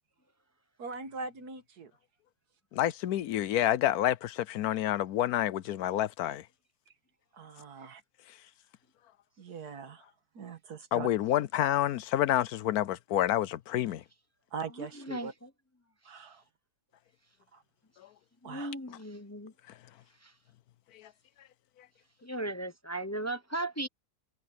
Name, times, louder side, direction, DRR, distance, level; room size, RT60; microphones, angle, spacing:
voice 1, 0.8-1.9 7.3-8.0 9.4-10.0 10.4-11.1 14.5-15.3 16.1-16.4 17.5-17.6 18.4-18.7, right 5 dB, 80° right, 2.1 m, -41 dB
voice 2, 2.7-6.4 10.9-14.0 20.9-21.1, left 12 dB, 75° left, 1.1 m, -28 dB
voice 3, 14.8-15.5 18.4-19.5 20.2-20.3 22.2-23.9, right 1 dB, 15° left, 0.8 m, -37 dB
omnidirectional pair, 1.7 m